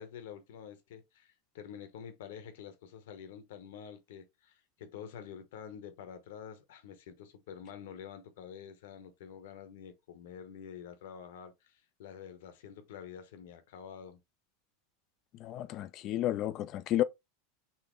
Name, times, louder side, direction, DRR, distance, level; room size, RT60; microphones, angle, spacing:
voice 1, 0.0-14.2, left 8 dB, 75° left, 0.9 m, -48 dB
voice 2, 15.4-17.0, left 13 dB, 45° left, 0.4 m, -32 dB
3.9 x 2.0 x 3.6 m
supercardioid pair, 115°, 0 cm